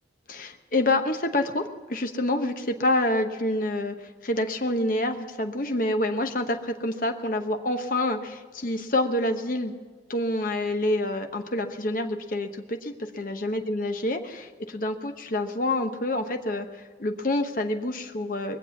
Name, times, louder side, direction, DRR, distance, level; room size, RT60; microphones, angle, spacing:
voice 1, 0.3-9.7 10.1-18.6, left 1 dB, 50° left, 6 dB, 1.0 m, -27 dB
22.0 x 7.6 x 7.2 m, 1.5 s
head